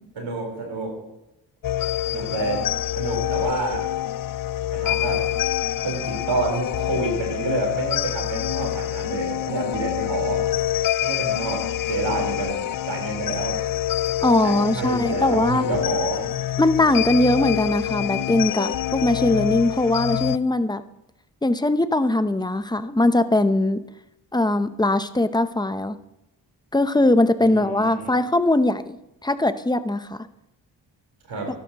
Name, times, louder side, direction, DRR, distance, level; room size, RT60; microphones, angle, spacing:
voice 1, 0.2-0.9 2.1-2.7 2.9-3.8 4.7-5.2 5.8-10.4 11.0-13.6 14.4-16.3 27.4-28.1 31.3-31.5, right 3 dB, 75° right, 0 dB, 4.3 m, -28 dB
sound 1, 1.6-20.4, left 12 dB, 50° left, 0.5 m, -26 dB
voice 2, 14.2-15.7 16.6-20.8 21.4-23.8 24.3-25.9 26.7-29.0 29.2-30.3, left 2 dB, 10° left, 11 dB, 0.8 m, -21 dB
13.5 x 11.5 x 3.0 m, 0.91 s
supercardioid pair, 40°, 45 cm